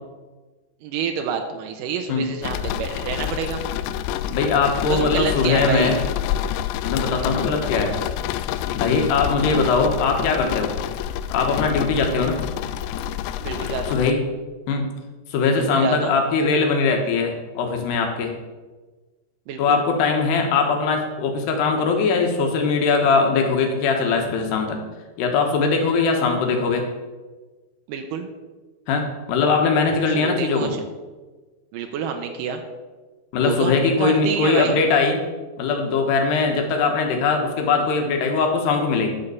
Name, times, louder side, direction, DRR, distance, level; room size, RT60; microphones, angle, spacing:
voice 1, 0.8-3.6 4.9-5.9 13.4-14.0 15.6-16.1 19.5-19.8 27.9-28.3 30.1-30.8 31.7-32.6 33.4-34.8, right 6 dB, 85° right, 5 dB, 1.9 m, -28 dB
sound 1, 2.4-14.1, left 11 dB, 85° left, 2.8 m, -28 dB
voice 2, 4.3-6.0 6.8-8.0 8.8-10.7 11.3-12.4 13.9-14.2 14.7-14.9 15.3-18.3 19.6-24.8 25.2-26.9 28.9-30.7 33.3-35.2 35.6-39.1, left 4 dB, 70° left, 3 dB, 3.4 m, -21 dB
11.5 x 6.8 x 7.0 m, 1.3 s
omnidirectional pair, 5.1 m